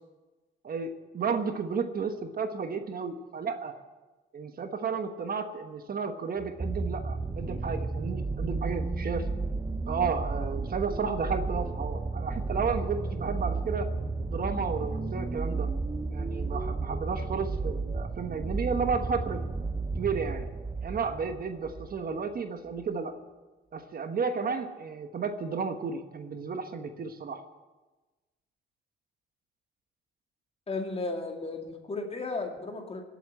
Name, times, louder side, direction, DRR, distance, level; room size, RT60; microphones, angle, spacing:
voice 1, 0.6-3.7 4.3-9.3 9.9-13.9 14.2-15.7 16.1-19.4 20.0-20.5 20.8-23.2 23.7-27.4, right 5 dB, 50° right, 7 dB, 1.3 m, -32 dB
sound 1, 6.4-22.0 22.8-22.9, right 3 dB, 20° right, 0.8 m, -33 dB
voice 2, 30.7-33.0, left 3 dB, 30° left, 2 dB, 2.4 m, -35 dB
17.5 x 8.3 x 8.4 m, 1.2 s
cardioid pair, 90°, 20 cm